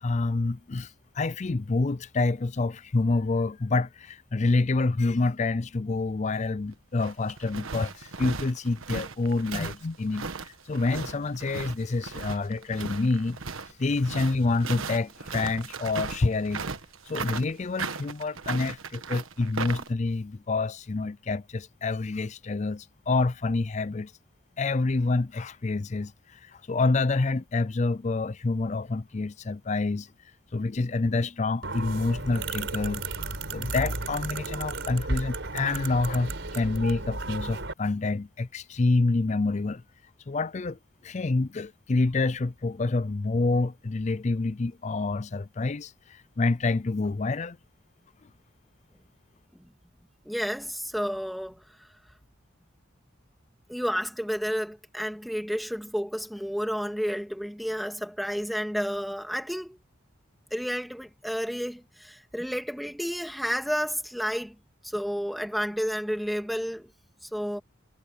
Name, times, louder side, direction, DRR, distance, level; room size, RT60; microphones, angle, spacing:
voice 1, 0.0-13.4 13.7-16.6 17.1-24.1 24.6-30.1 30.5-33.1 33.5-39.8 40.3-47.6, left 3 dB, 35° left, 0.5 m, -27 dB
sound 1, 6.7-19.9, right 4 dB, 85° right, 1.4 m, -37 dB
sound 2, 31.6-37.7, right 3 dB, 65° right, 4.4 m, -33 dB
voice 2, 50.3-51.6 53.7-59.8 60.5-64.6 64.8-66.9 67.3-67.6, equal, ahead, 2.3 m, -31 dB
head